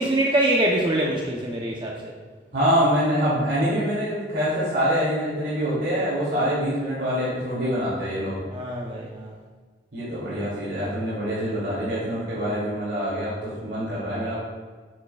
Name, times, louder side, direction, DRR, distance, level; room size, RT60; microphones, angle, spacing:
voice 1, 0.0-2.1 8.5-9.3 10.3-10.5, right 1 dB, 25° right, -2 dB, 0.7 m, -24 dB
voice 2, 2.5-8.4 9.9-14.4, equal, 90° right, -8 dB, 2.5 m, -25 dB
10.5 x 7.5 x 2.3 m, 1.4 s
head